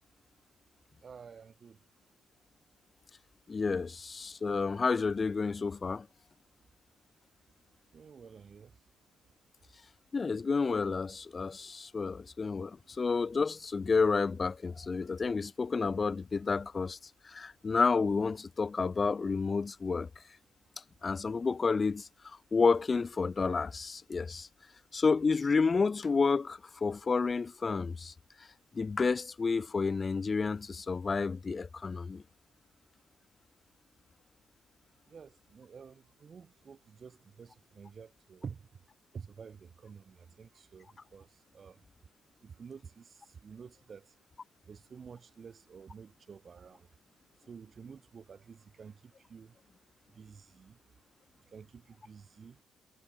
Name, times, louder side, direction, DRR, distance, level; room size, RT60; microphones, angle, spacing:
voice 1, 1.0-1.8 7.9-8.7 35.1-38.6 39.1-41.3 41.5-41.8 42.4-44.1 44.7-46.9 47.5-49.5 50.1-50.8 51.5-52.6, right 6 dB, 45° right, 4.2 m, -50 dB
voice 2, 3.5-6.1 10.1-17.0 17.3-20.1 21.0-22.1 22.5-24.5 24.9-28.1 28.7-32.2, left 4 dB, 35° left, 0.6 m, -30 dB
cardioid pair, 90°, 0 cm